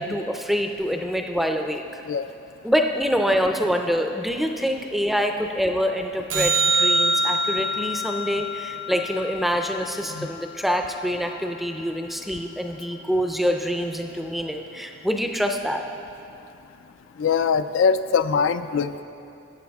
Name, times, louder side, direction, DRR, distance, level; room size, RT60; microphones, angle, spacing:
voice 1, 0.0-2.0 2.6-15.8, equal, ahead, 4 dB, 0.4 m, -25 dB
sound 1, 6.3-10.8 17.3-17.4, right 1 dB, 70° right, 1.0 m, -25 dB
voice 2, 17.2-19.0, left 6 dB, 70° left, 12 dB, 0.3 m, -22 dB
14.0 x 9.0 x 3.5 m, 2.6 s
head